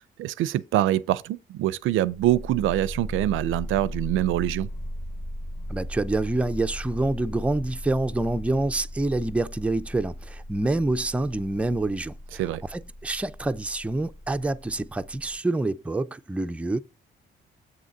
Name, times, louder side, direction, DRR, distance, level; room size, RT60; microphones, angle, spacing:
voice 1, 0.0-4.7 12.4-12.6, right 14 dB, 85° right, 0.5 m, -25 dB
sound 1, 2.0-15.4, equal, 25° left, 1.7 m, -38 dB
voice 2, 5.7-16.8, right 2 dB, 5° right, 0.4 m, -27 dB
7.8 x 3.7 x 6.5 m
cardioid pair, 90°, 20 cm